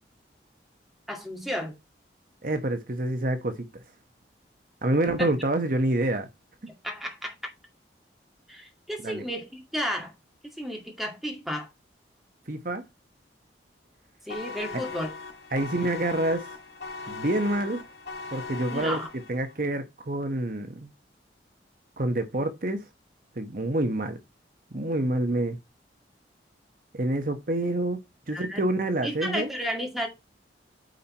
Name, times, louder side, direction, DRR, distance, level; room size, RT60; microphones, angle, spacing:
voice 1, 1.1-1.7 5.2-5.3 6.7-7.3 8.5-10.1 10.6-11.7 14.3-15.2 18.7-19.1 28.3-28.6 29.0-30.1, equal, ahead, 2.2 m, -32 dB
voice 2, 2.4-3.7 4.8-6.3 9.0-9.2 12.5-12.8 15.5-16.5 17.1-17.8 18.3-19.0 19.3-20.9 22.0-22.8 23.4-24.2 24.7-25.6 26.9-28.0 28.3-29.5, right 1 dB, 50° right, 1.0 m, -27 dB
sound 1, 14.3-19.5, left 4 dB, 65° left, 2.5 m, -39 dB
9.2 x 4.5 x 4.4 m
head